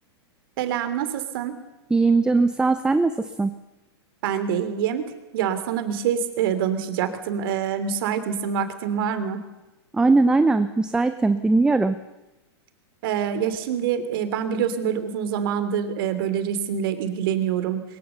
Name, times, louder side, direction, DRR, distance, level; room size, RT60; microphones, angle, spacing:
voice 1, 0.6-1.6 4.2-5.1 5.3-9.4 13.0-17.8, right 8 dB, 60° right, 10 dB, 3.0 m, -25 dB
voice 2, 1.9-3.5 9.9-12.0, right 3 dB, 5° right, 11 dB, 0.7 m, -20 dB
22.5 x 21.5 x 7.0 m, 1.0 s
hypercardioid pair, 140°, 14 cm